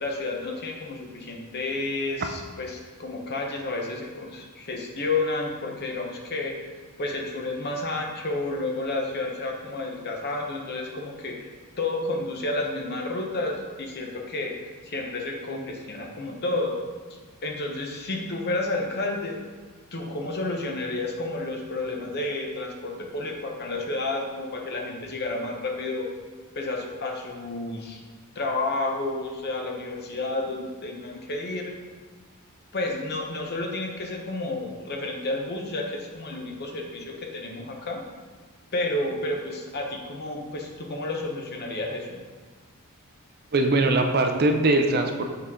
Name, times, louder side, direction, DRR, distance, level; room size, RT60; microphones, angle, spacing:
voice 1, 0.0-6.7 7.0-11.4 11.8-14.5 14.8-16.8 17.4-19.4 19.9-26.1 26.5-28.0 28.3-31.7 32.7-38.0 38.7-42.2, left 2 dB, 45° left, 1 dB, 0.9 m, -31 dB
voice 2, 43.5-45.2, right 2 dB, 45° right, 5 dB, 0.5 m, -21 dB
6.9 x 4.0 x 3.7 m, 1.4 s
head